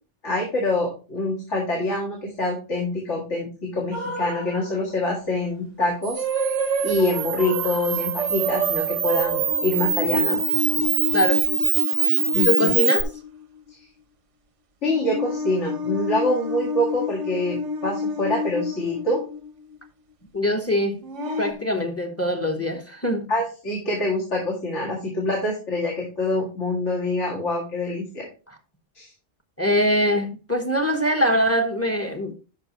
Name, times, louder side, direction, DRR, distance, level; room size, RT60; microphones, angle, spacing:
voice 1, 0.2-10.4 12.3-12.7 14.8-19.2 23.3-28.3 28.9-29.1, left 1 dB, 75° left, 2.3 m, -25 dB
sound 1, 3.9-4.9 6.2-13.4 13.7-13.8 14.9-19.8 21.0-21.5, left 1 dB, 85° right, 1.3 m, -28 dB
Camera, 6.0-13.0, right 8 dB, 55° right, 0.9 m, -24 dB
voice 2, 12.4-13.1 20.3-21.0 21.4-23.3 29.6-32.3, equal, 15° left, 1.0 m, -23 dB
12.0 x 5.1 x 3.0 m
omnidirectional pair, 1.2 m